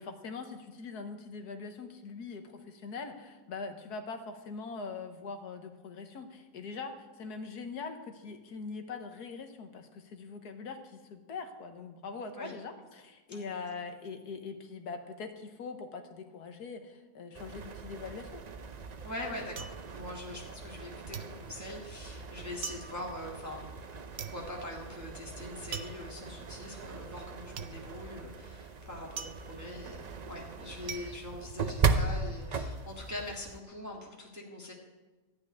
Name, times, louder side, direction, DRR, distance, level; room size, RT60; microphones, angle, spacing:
voice 1, 0.0-18.4, left 4 dB, 75° left, 6 dB, 1.6 m, -42 dB
sound 1, 17.3-33.6, right 4 dB, 90° right, 0.3 m, -38 dB
voice 2, 19.0-23.8 24.1-34.7, left 1 dB, 10° right, -2 dB, 1.5 m, -43 dB
sound 2, 19.6-20.8 21.1-32.2 32.6-33.2, right 7 dB, 55° right, 0.8 m, -45 dB
13.5 x 5.8 x 9.3 m, 1.2 s
omnidirectional pair, 1.7 m